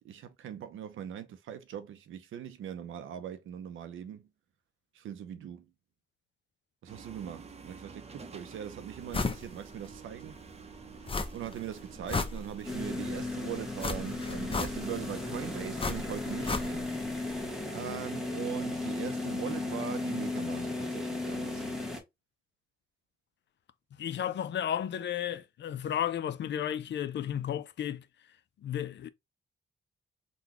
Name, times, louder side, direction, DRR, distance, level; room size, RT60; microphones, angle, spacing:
voice 1, 0.0-4.2 4.9-5.7 6.8-10.4 11.3-16.9 17.7-21.7, right 9 dB, 85° right, 0.6 m, -41 dB
sound 1, 6.9-15.6, right 5 dB, 30° right, 0.7 m, -49 dB
sound 2, 9.1-9.4 9.8-9.9 11.1-11.6 11.9-12.9 13.8-15.1 15.8-17.0 17.3-17.4, left 3 dB, 25° left, 0.7 m, -33 dB
sound 3, 12.6-22.0, left 2 dB, ahead, 1.1 m, -35 dB
voice 2, 24.0-28.0 28.6-29.1, left 10 dB, 65° left, 0.4 m, -33 dB
3.9 x 2.2 x 2.9 m
cardioid pair, 70°, 20 cm